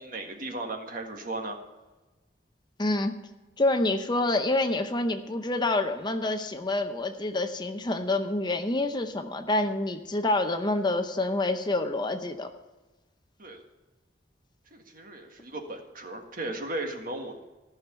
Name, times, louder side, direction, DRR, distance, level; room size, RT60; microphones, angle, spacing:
voice 1, 0.0-1.6 13.4-13.6 14.7-17.4, right 2 dB, 50° right, 3 dB, 1.7 m, -36 dB
voice 2, 2.8-3.1 3.6-12.5, left 2 dB, 25° left, 7 dB, 0.7 m, -27 dB
15.0 x 6.2 x 6.9 m, 1.1 s
head